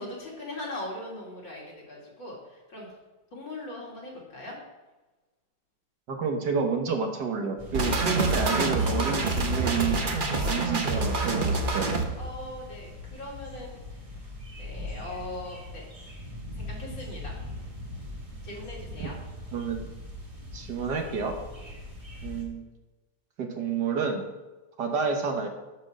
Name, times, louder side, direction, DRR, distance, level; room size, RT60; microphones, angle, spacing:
voice 1, 0.0-2.9 3.3-4.6 10.3-10.7 12.2-14.2 14.6-15.8 16.6-17.4 18.4-19.2 21.6-21.7, left 1 dB, 85° left, -4 dB, 3.4 m, -40 dB
voice 2, 6.1-10.0 10.5-11.9 19.0-19.1 19.5-19.9 20.5-21.3 22.2-22.6 23.4-24.2 24.8-25.5, right 5 dB, 65° right, 3 dB, 1.8 m, -29 dB
sound 1, 7.6-22.4, left 2 dB, 20° right, 1.6 m, -41 dB
sound 2, 7.7-12.0, right 3 dB, 35° right, 0.9 m, -26 dB
11.5 x 4.7 x 6.3 m, 1.1 s
omnidirectional pair, 2.0 m